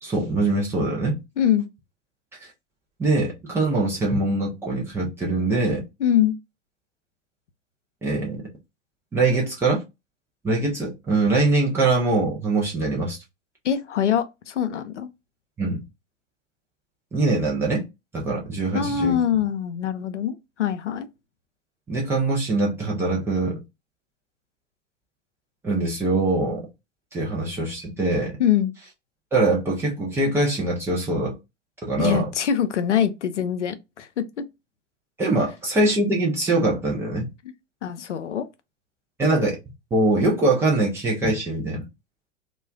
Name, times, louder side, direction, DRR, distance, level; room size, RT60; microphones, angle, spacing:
voice 1, 0.0-1.2 3.0-5.8 8.0-8.4 9.1-9.8 10.4-13.2 15.6-15.8 17.1-17.8 18.1-19.2 21.9-23.6 25.6-26.7 27.1-28.3 29.3-31.4 31.8-32.3 35.2-37.3 39.2-39.6 39.9-41.9, right 2 dB, 5° right, 0.4 m, -23 dB
voice 2, 1.4-1.7 6.0-6.3 13.6-15.1 18.7-21.1 28.4-28.7 32.0-34.4 37.8-38.5, left 9 dB, 70° left, 0.5 m, -23 dB
2.3 x 2.1 x 3.4 m
figure-of-eight pair, 95°, 37 cm